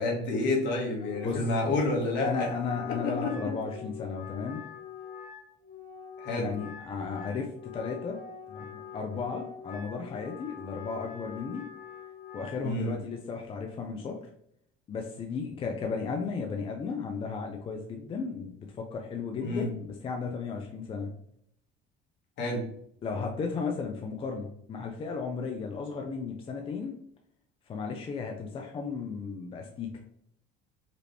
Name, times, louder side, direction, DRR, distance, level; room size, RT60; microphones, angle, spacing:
voice 1, 0.0-2.5 3.0-3.5 6.2-6.5 12.6-12.9 19.4-19.7 22.4-22.6, left 2 dB, 70° left, -1 dB, 1.8 m, -29 dB
Wind instrument woodwind instrument, 1.0-12.6, left 7 dB, 50° left, 1.1 m, -45 dB
voice 2, 1.2-1.8 2.2-4.6 6.4-8.2 8.5-11.7 12.3-14.2 14.9-21.1 23.0-27.0 27.7-29.9, left 5 dB, 30° left, 2 dB, 0.6 m, -35 dB
4.9 x 3.1 x 3.3 m, 0.69 s
cardioid pair, 135°, 19 cm